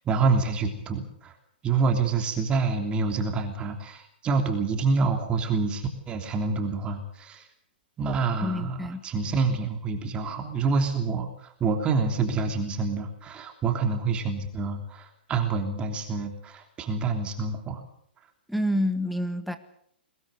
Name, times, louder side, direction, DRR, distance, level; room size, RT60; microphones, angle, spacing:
voice 1, 0.0-1.3 1.6-7.4 8.0-17.8, right 4 dB, 20° right, 4 dB, 3.2 m, -27 dB
voice 2, 8.4-9.0 18.5-19.6, left 1 dB, ahead, 10 dB, 1.7 m, -28 dB
23.0 x 18.5 x 7.9 m, 0.68 s
hypercardioid pair, 145°, 6 cm